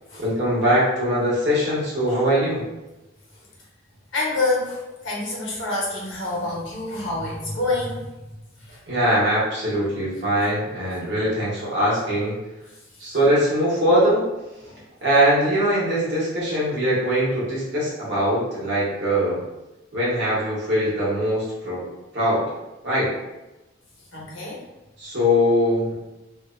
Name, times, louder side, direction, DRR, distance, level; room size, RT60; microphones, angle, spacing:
voice 1, 0.2-2.6 8.9-12.4 13.0-14.3 15.0-19.4 19.9-21.9 22.1-22.5 22.8-23.1 25.0-25.9, equal, 65° right, -8 dB, 1.1 m, -21 dB
voice 2, 4.1-8.0 8.7-8.8 14.6-14.8 24.1-24.6, left 2 dB, 75° left, -5 dB, 0.9 m, -27 dB
2.7 x 2.1 x 2.4 m, 1.0 s
head